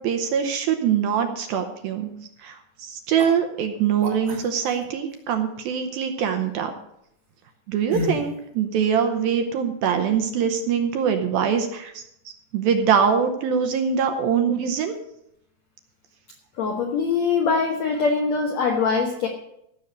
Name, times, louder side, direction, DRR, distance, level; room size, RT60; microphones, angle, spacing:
voice 1, 0.0-2.1 2.4-6.7 7.7-12.0 12.5-14.9, right 7 dB, 75° right, 6 dB, 2.4 m, -23 dB
sound 1, 3.2-3.3 4.0-4.9 7.9-8.3, left 1 dB, 40° right, 1.5 m, -30 dB
voice 2, 16.6-19.3, left 5 dB, 90° left, 2 dB, 1.5 m, -22 dB
15.0 x 6.4 x 6.6 m, 0.78 s
omnidirectional pair, 4.8 m